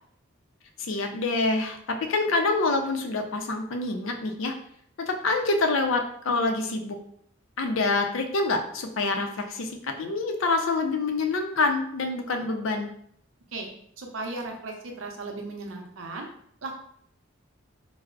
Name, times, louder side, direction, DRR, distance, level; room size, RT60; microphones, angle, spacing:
voice 1, 0.8-4.5 5.0-7.0 7.6-12.9, left 3 dB, 70° left, 4 dB, 0.5 m, -26 dB
voice 2, 14.0-16.3 16.6-16.7, right 3 dB, 75° right, 2 dB, 0.6 m, -36 dB
4.5 x 2.0 x 2.4 m, 0.66 s
head